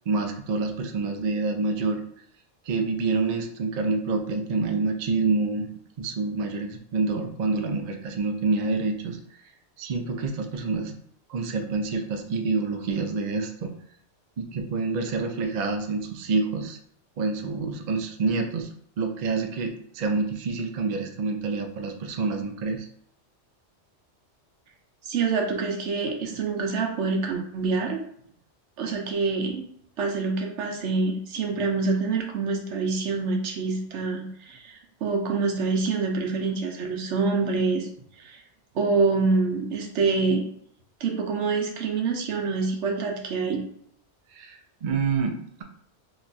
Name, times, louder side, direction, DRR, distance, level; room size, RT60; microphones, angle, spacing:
voice 1, 0.1-2.0 2.7-5.7 6.0-9.2 9.8-10.9 11.3-13.7 14.4-16.8 17.2-18.7 19.0-22.9 44.3-45.3, right 4 dB, 55° right, 5 dB, 0.5 m, -27 dB
voice 2, 25.0-28.0 28.8-29.7 30.0-37.9 38.2-38.4 38.7-40.4 41.0-43.6, right 4 dB, 85° right, 2 dB, 1.0 m, -26 dB
3.0 x 2.2 x 3.9 m, 0.67 s
omnidirectional pair, 1.2 m